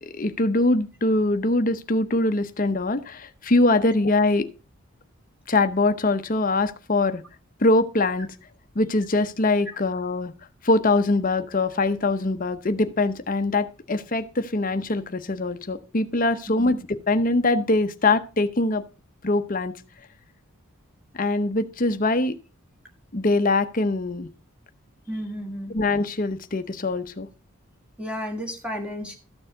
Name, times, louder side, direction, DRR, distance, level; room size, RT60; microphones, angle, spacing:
voice 1, 0.0-4.5 5.5-7.2 7.6-8.3 8.7-10.3 10.6-18.8 19.2-19.7 21.2-22.4 23.1-24.3 25.7-27.3, left 2 dB, 40° left, 11 dB, 0.8 m, -23 dB
voice 2, 25.1-25.7 28.0-29.2, equal, 5° right, 2 dB, 1.7 m, -32 dB
13.5 x 6.7 x 3.8 m, 0.32 s
head